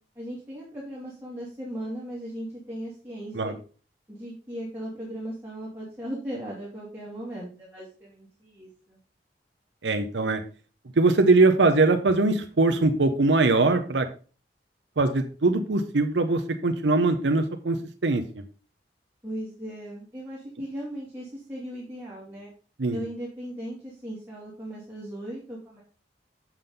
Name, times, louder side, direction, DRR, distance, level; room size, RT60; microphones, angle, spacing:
voice 1, 0.1-3.5 4.1-9.0 19.2-22.5 22.9-25.8, equal, 10° right, -6 dB, 2.5 m, -37 dB
voice 2, 9.8-10.4 11.0-14.1 15.0-18.2 22.8-23.0, right 3 dB, 85° right, 7 dB, 0.8 m, -22 dB
7.4 x 6.8 x 3.8 m, 0.37 s
head